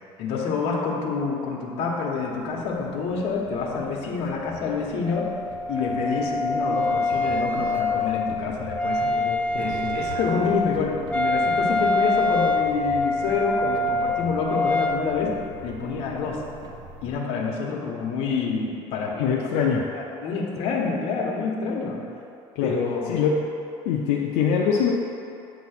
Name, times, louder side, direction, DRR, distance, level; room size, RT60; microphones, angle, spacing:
voice 1, 0.2-5.3 5.7-9.2 9.5-16.5 17.0-19.4 19.9-22.0 22.6-23.2, left 5 dB, 60° left, -1 dB, 1.0 m, -27 dB
sound 1, 2.2-17.1, right 3 dB, 45° right, 0.7 m, -44 dB
Wind instrument woodwind instrument, 5.0-15.0, left 2 dB, 10° left, 0.3 m, -25 dB
voice 2, 9.0-10.0 19.2-19.9 22.6-22.7 23.1-23.4 23.8-24.9, left 6 dB, 85° left, -2 dB, 0.6 m, -24 dB
7.9 x 3.0 x 5.8 m, 2.7 s
cardioid pair, 150°, 11 cm